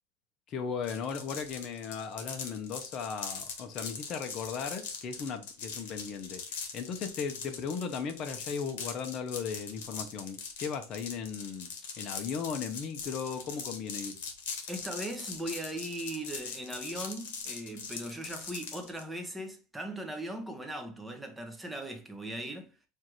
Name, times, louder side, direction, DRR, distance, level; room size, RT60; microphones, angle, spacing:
voice 1, 0.5-11.7 12.0-14.2, left 6 dB, 35° left, 0.7 m, -37 dB
sound 1, 0.8-19.0, left 6 dB, 75° left, 1.1 m, -41 dB
voice 2, 14.7-22.7, right 1 dB, 5° right, 0.7 m, -39 dB
4.6 x 2.5 x 4.5 m
supercardioid pair, 155°, 0 cm